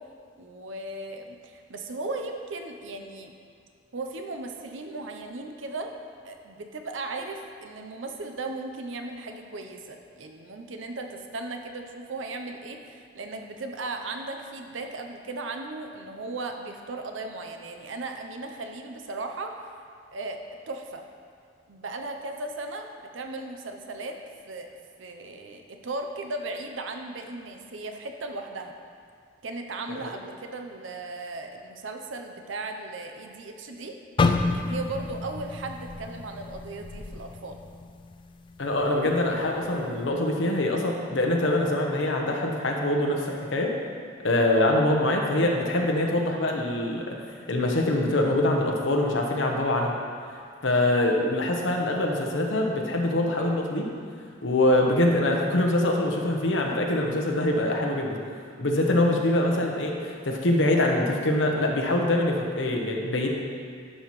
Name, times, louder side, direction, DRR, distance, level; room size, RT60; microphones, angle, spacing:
voice 1, 0.4-3.3 3.9-6.0 6.2-19.5 20.1-20.4 20.7-21.0 21.7-22.9 23.1-24.2 24.5-24.7 25.0-28.7 29.4-34.0 34.4-37.6, right 2 dB, 85° right, 4 dB, 0.7 m, -36 dB
sound 1, 34.2-38.2 38.6-38.8 39.5-39.8, left 3 dB, 25° left, 0.3 m, -29 dB
voice 2, 38.6-43.7 44.2-47.1 47.5-50.0 50.6-53.9 54.4-58.2 58.6-63.3, left 1 dB, 75° left, 0 dB, 1.0 m, -24 dB
11.5 x 5.6 x 3.1 m, 2.2 s
head